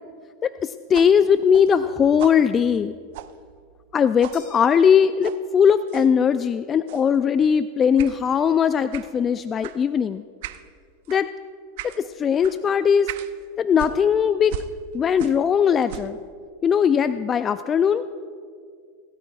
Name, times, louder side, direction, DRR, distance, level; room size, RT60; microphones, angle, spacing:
voice 1, 0.4-2.9 3.9-10.2 11.1-11.3 11.8-13.1 13.6-14.5 14.9-16.2 16.6-18.0, left 7 dB, 30° left, 13 dB, 0.4 m, -19 dB
sound 1, 0.9-3.9 4.2-4.4 5.2-5.4 5.9-6.1 6.9-7.2 8.0-8.2 8.9-9.1 9.6-9.8 10.4-10.7 11.1-11.3 11.8-12.0 12.4-12.6 13.1-13.3 13.8-15.5 15.8-16.2, right 13 dB, 65° right, 0.6 m, -38 dB
sound 2, 4.3-5.8, left 6 dB, 50° left, 4.5 m, -51 dB
26.5 x 13.5 x 2.4 m, 2.1 s
hypercardioid pair, 100°, 0 cm